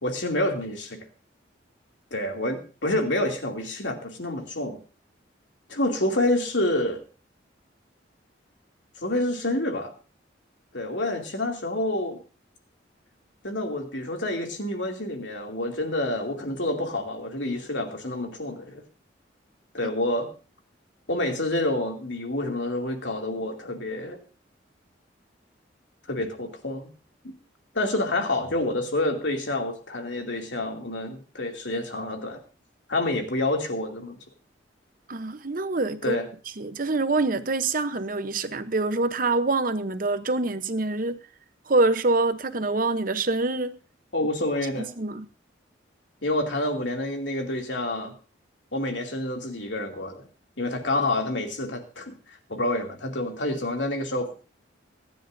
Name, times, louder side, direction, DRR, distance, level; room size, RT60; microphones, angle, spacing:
voice 1, 0.0-1.0 2.1-4.8 5.7-7.0 9.0-9.9 10.7-12.2 13.4-18.8 19.7-20.3 21.1-24.2 26.1-26.9 27.7-32.4 32.9-34.2 36.0-36.3 44.1-44.9 46.2-48.1 48.7-50.2 50.6-54.3, left 1 dB, 70° left, 2.7 m, -28 dB
voice 2, 35.1-36.2 36.6-41.2 41.7-43.8 44.8-45.3, right 3 dB, 45° right, 0.9 m, -25 dB
24.0 x 10.0 x 2.7 m
head